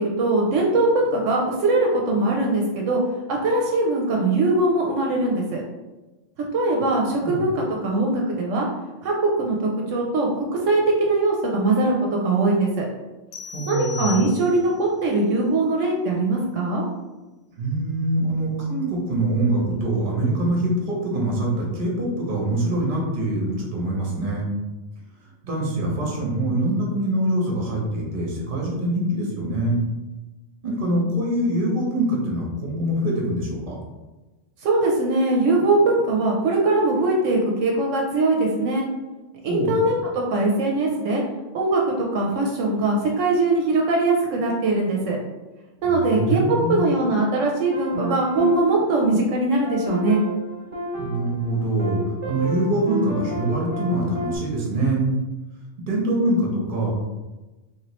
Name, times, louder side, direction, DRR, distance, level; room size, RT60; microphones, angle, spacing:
voice 1, 0.0-3.0 3.4-5.6 6.5-8.7 9.0-12.9 13.7-16.8 34.6-38.9 39.4-41.2 41.5-45.2 45.8-50.2, right 2 dB, 80° right, -1 dB, 0.9 m, -21 dB
sound 1, 13.3-14.8, left 6 dB, 80° left, 0.9 m, -36 dB
voice 2, 13.5-14.2 17.6-24.5 25.4-29.8 30.6-33.8 39.5-39.8 45.8-46.9 50.9-55.1 55.9-56.9, right 1 dB, 45° right, -2 dB, 0.9 m, -24 dB
sound 2, 46.0-47.3 47.7-54.4, equal, 30° right, 0.9 m, -32 dB
3.0 x 2.9 x 3.0 m, 1.1 s
omnidirectional pair, 1.3 m